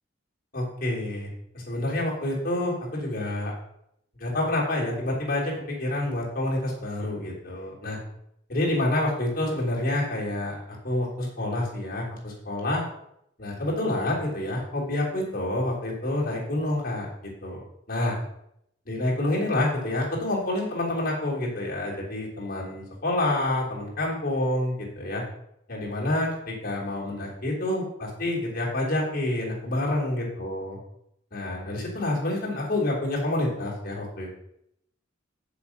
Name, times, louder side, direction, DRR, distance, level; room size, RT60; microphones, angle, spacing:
voice 1, 0.5-1.3 1.5-3.5 4.2-8.0 8.5-12.8 13.4-17.1 17.4-17.6 17.9-18.2 18.9-25.2 25.7-30.8 31.3-34.3, left 1 dB, 45° left, -3 dB, 3.2 m, -28 dB
7.3 x 6.9 x 5.8 m, 0.77 s
head